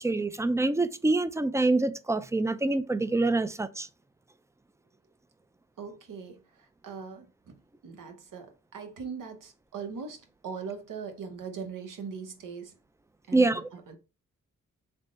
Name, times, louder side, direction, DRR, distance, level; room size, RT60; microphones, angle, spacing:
voice 1, 0.0-3.9 13.3-13.7, right 2 dB, 10° right, 0.3 m, -26 dB
voice 2, 5.8-7.3 7.8-12.7 13.3-14.0, right 6 dB, 80° right, 0.9 m, -40 dB
3.4 x 2.1 x 3.8 m
cardioid pair, 50°, 32 cm